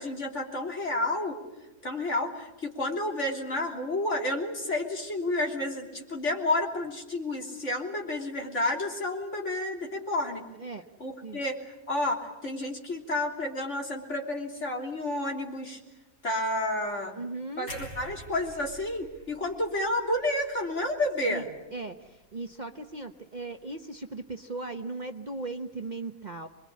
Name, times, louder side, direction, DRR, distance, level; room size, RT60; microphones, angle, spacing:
voice 1, 0.0-1.4 1.8-10.4 11.0-11.6 11.9-15.8 16.2-17.1 17.6-21.5, left 1 dB, 55° left, 1 dB, 3.6 m, -30 dB
voice 2, 17.1-17.7 21.3-21.4 21.7-26.5, right 3 dB, 35° right, 6 dB, 1.0 m, -37 dB
sound 1, 17.7-21.7 22.1-22.3, equal, 75° left, 6.6 m, -47 dB
26.5 x 22.0 x 8.5 m, 1.1 s
omnidirectional pair, 1.5 m